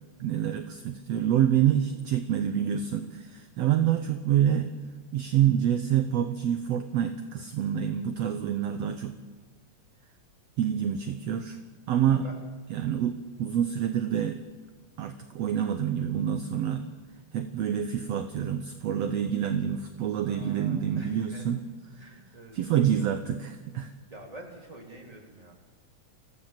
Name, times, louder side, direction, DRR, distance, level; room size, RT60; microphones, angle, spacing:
voice 1, 0.2-4.7 5.1-9.1 10.6-11.6 11.9-12.3 12.7-14.4 15.0-16.8 17.3-21.6 22.5-23.9, right 9 dB, 70° right, 9 dB, 1.9 m, -27 dB
voice 2, 20.2-21.4 22.0-22.6 24.1-25.5, right 1 dB, 10° right, 0 dB, 3.3 m, -47 dB
25.0 x 16.0 x 7.5 m, 1.4 s
omnidirectional pair, 3.4 m